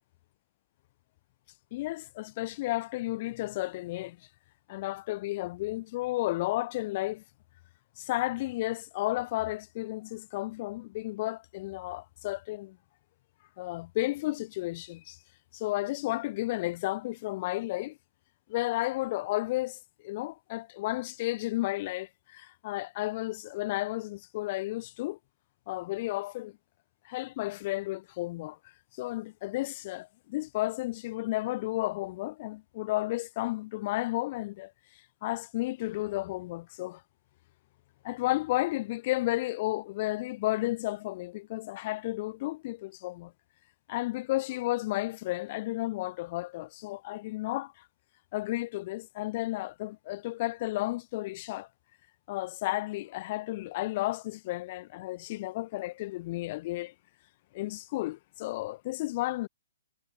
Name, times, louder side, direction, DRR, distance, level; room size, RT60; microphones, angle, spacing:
voice 1, 1.7-4.2 4.7-7.2 8.0-12.8 13.6-15.2 15.5-18.0 18.5-25.2 25.7-26.5 27.0-28.6 29.0-34.7 35.2-37.0 38.0-43.3 43.9-47.7 48.3-51.7 52.3-56.9 57.5-59.5, left 18 dB, 40° left, 0.7 m, -32 dB
hypercardioid pair, 135°, 0 cm